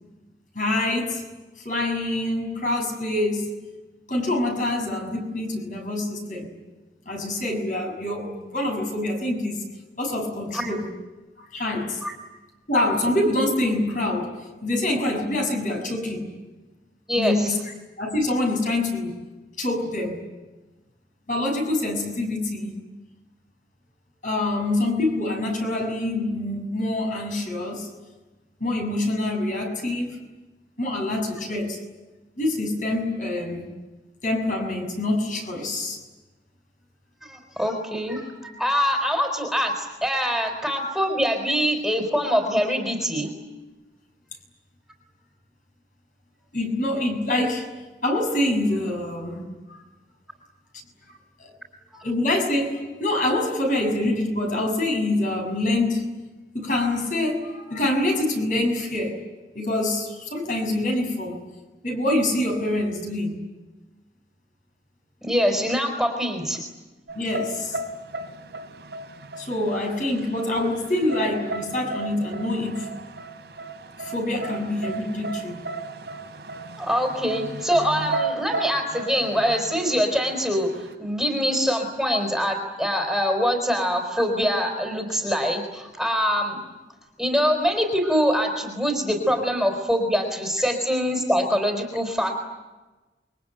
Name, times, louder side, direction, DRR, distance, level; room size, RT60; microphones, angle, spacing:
voice 1, 0.5-1.2 1.6-3.6 4.1-6.5 7.0-9.6 10.0-10.9 11.4-12.0 12.7-16.3 17.2-17.6 18.0-19.1 19.6-20.2 21.3-22.7 24.2-27.9 28.6-30.2 30.8-31.8 32.4-33.7 34.2-36.0 46.5-47.7 48.0-49.8 51.4-51.5 51.9-56.2 56.5-59.2 59.5-61.4 61.8-63.4 67.1-67.8 69.4-72.9 74.0-75.6, left 1 dB, 45° left, 2 dB, 6.7 m, -25 dB
voice 2, 17.1-17.5 37.2-43.3 51.9-52.0 65.2-66.6 76.8-86.6 87.2-92.4, equal, ahead, 2 dB, 4.0 m, -24 dB
sound 1, 67.1-80.9, right 3 dB, 90° right, 3.1 m, -35 dB
28.5 x 23.0 x 9.1 m, 1.2 s
head